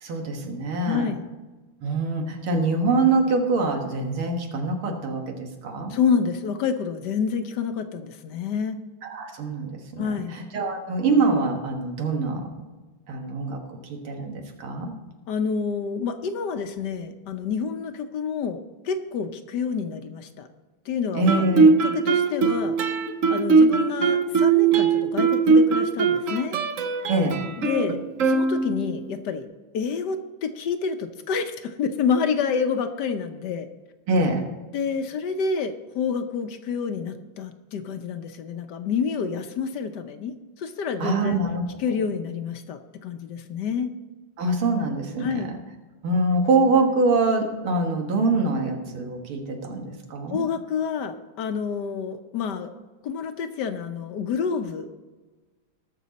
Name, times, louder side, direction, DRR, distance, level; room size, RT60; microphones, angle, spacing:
voice 1, 0.0-1.1 1.8-6.0 9.0-12.6 13.1-14.9 21.1-21.7 27.1-27.4 34.1-34.4 41.0-41.8 44.4-45.5 46.0-50.4, right 3 dB, 90° right, 3 dB, 2.4 m, -24 dB
voice 2, 0.9-1.2 5.9-8.8 10.0-10.3 15.3-20.5 20.9-22.7 23.3-26.6 27.6-29.5 29.7-33.7 34.7-41.4 41.8-43.9 45.2-45.5 50.3-52.7 53.0-55.1, left 6 dB, 65° left, 8 dB, 1.1 m, -28 dB
Guitar, 21.3-29.0, right 4 dB, 60° right, 0.8 m, -20 dB
19.5 x 6.5 x 4.1 m, 1.3 s
omnidirectional pair, 2.3 m